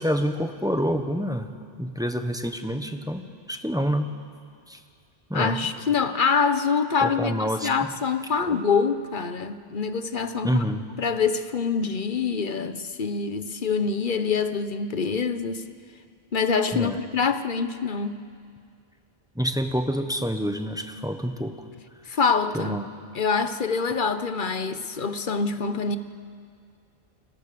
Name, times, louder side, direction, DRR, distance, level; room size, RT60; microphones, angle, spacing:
voice 1, 0.0-1.5 1.8-4.1 4.7-4.8 5.3-5.6 7.0-7.7 8.5-8.6 10.4-10.8 16.7-17.0 19.3-21.7 22.5-22.9, equal, 5° right, 6 dB, 1.2 m, -27 dB
voice 2, 5.3-10.6 11.0-15.6 16.3-18.2 22.1-22.8 23.1-26.0, left 5 dB, 50° left, 10 dB, 1.2 m, -25 dB
30.0 x 22.0 x 6.8 m, 2.2 s
omnidirectional pair, 1.1 m